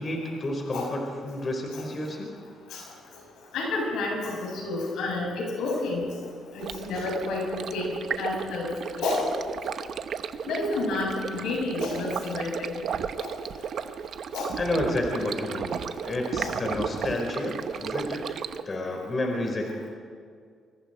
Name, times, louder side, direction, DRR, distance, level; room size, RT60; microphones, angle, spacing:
voice 1, 0.0-2.3 14.6-15.8 16.0-18.2 18.7-19.6, left 1 dB, 35° left, 1 dB, 4.7 m, -30 dB
voice 2, 3.5-6.0 6.5-7.4 7.7-8.7 9.0-9.3 10.5-12.7 13.2-13.3 14.3-14.5 16.4-16.5, left 2 dB, 85° left, -1 dB, 7.2 m, -30 dB
Stream, 6.6-18.6, right 7 dB, 65° right, 0.9 m, -34 dB
25.5 x 24.0 x 4.5 m, 2.1 s
cardioid pair, 90°, 0 cm